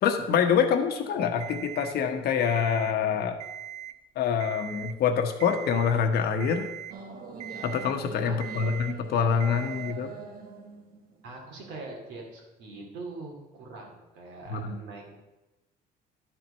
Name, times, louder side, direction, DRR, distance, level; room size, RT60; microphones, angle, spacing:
voice 1, 0.0-3.4 4.2-6.7 7.6-10.1 14.5-14.8, left 7 dB, 70° left, 6 dB, 1.1 m, -26 dB
Alarm, 1.4-2.0 2.4-3.0 3.3-4.0 4.4-5.0 5.4-6.0 6.4-7.0 7.4-8.0 8.4-9.0 9.4-10.0, right 10 dB, 45° right, 0.5 m, -40 dB
sound 1, 6.9-12.0, right 5 dB, 60° right, 1.2 m, -43 dB
voice 2, 8.2-8.7 11.2-15.2, right 3 dB, 85° right, 0 dB, 2.4 m, -43 dB
11.0 x 4.6 x 5.4 m, 1.0 s
cardioid pair, 110°, 17 cm